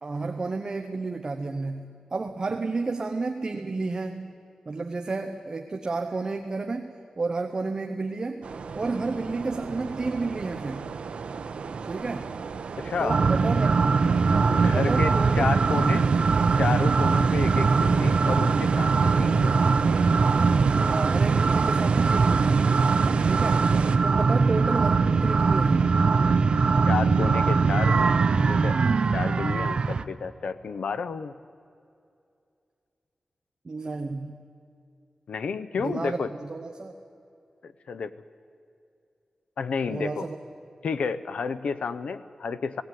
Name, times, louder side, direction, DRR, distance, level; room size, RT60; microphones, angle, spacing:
voice 1, 0.0-4.4 4.7-8.5 8.7-10.8 11.8-12.3 13.0-13.8 14.2-15.5 15.8-16.0 20.9-22.7 23.2-23.7 24.0-26.0 33.6-34.4 35.7-36.9 39.9-40.4, right 3 dB, 35° right, 5 dB, 0.9 m, -31 dB
sound 1, 8.4-24.0, right 5 dB, 80° right, 0.9 m, -35 dB
voice 2, 12.8-13.2 14.5-16.1 16.6-19.7 24.1-24.3 26.9-28.2 28.5-28.8 29.1-31.3 35.3-36.3 37.6-38.1 39.6-40.3 40.8-42.8, left 5 dB, 85° left, 13 dB, 0.8 m, -31 dB
sound 2, 13.1-30.0, right 4 dB, 55° right, 0.6 m, -21 dB
18.0 x 17.0 x 9.2 m, 2.5 s
wide cardioid pair, 150°, 2 cm